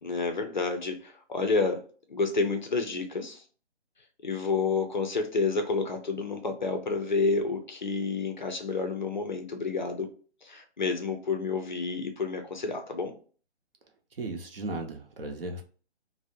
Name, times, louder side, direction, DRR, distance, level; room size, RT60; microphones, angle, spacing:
voice 1, 0.0-1.8 2.1-3.4 4.2-10.1 10.4-13.1, left 4 dB, 45° left, 6 dB, 0.4 m, -29 dB
voice 2, 14.2-15.6, right 2 dB, 55° right, 4 dB, 0.7 m, -36 dB
2.5 x 2.0 x 2.7 m, 0.40 s
figure-of-eight pair, 150°, 34 cm